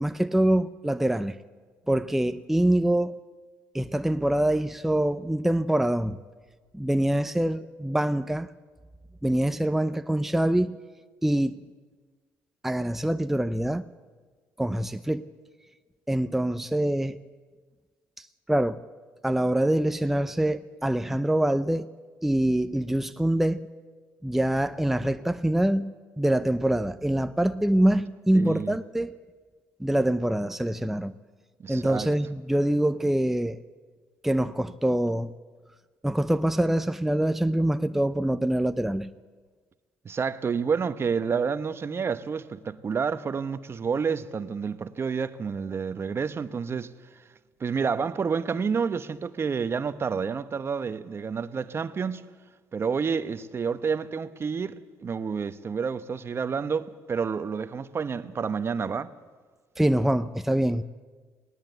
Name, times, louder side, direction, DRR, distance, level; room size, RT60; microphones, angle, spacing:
voice 1, 0.0-1.4 1.9-3.2 3.7-6.2 6.7-8.5 9.2-10.8 11.2-11.6 12.6-13.9 14.6-15.2 16.1-17.2 18.2-18.8 19.2-21.9 22.2-23.7 24.2-29.1 29.8-31.2 31.7-33.6 34.2-35.3 36.0-39.1 59.8-60.8, right 1 dB, 5° right, 0.6 m, -25 dB
voice 2, 28.3-28.8 31.6-32.1 40.0-46.9 47.6-52.2 52.7-59.1, right 6 dB, 40° right, 1.0 m, -29 dB
19.5 x 18.5 x 8.2 m
supercardioid pair, 70°, 7 cm